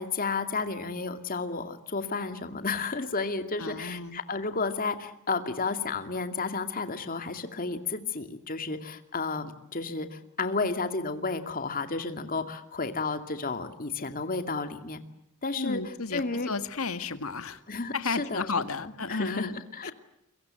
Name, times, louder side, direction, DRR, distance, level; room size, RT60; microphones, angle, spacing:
voice 1, 0.0-15.0 15.4-15.8 16.1-16.5 17.7-18.5 18.8-19.9, left 4 dB, 40° left, 8 dB, 2.5 m, -32 dB
voice 2, 3.6-4.2 15.6-17.6 17.9-19.9, left 4 dB, 65° left, 11 dB, 1.8 m, -33 dB
29.0 x 23.5 x 7.7 m, 0.76 s
head